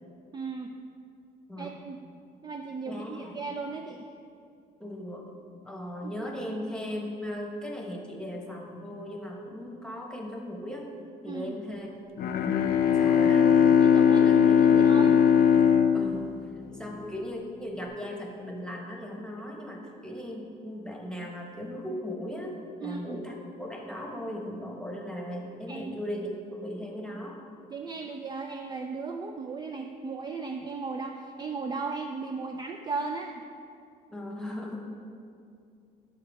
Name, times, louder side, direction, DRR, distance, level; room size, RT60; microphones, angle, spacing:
voice 1, 0.3-0.7 1.6-2.0 2.4-4.1 6.0-6.1 11.3-11.6 13.1-13.5 13.8-15.2 22.8-23.2 25.7-25.9 27.7-33.4, right 4 dB, 25° right, 4 dB, 0.4 m, -36 dB
voice 2, 2.9-3.4 4.8-10.9 11.2-12.0 12.3-12.6 12.9-15.2 15.9-27.4 34.1-34.8, equal, 5° left, 0 dB, 1.1 m, -38 dB
Bowed string instrument, 12.2-17.1, left 8 dB, 65° left, 0.5 m, -20 dB
11.5 x 4.7 x 3.5 m, 2.4 s
cardioid pair, 110°, 17 cm